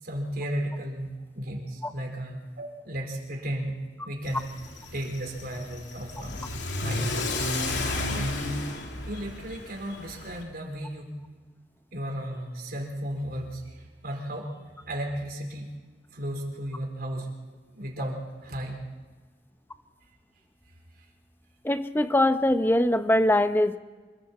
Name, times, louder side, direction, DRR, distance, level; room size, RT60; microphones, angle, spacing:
voice 1, 0.0-3.8 4.0-4.4 4.9-6.5 6.8-7.4 8.1-8.3 9.0-11.1 11.9-15.7 16.1-17.3 17.7-18.8 21.0-21.1, equal, 55° right, 2 dB, 4.7 m, -34 dB
Car / Accelerating revving vroom, 4.2-10.4, left 2 dB, 75° left, 2.7 m, -32 dB
voice 2, 21.6-23.8, left 1 dB, 10° left, 9 dB, 0.9 m, -22 dB
27.0 x 23.0 x 4.5 m, 1.4 s
head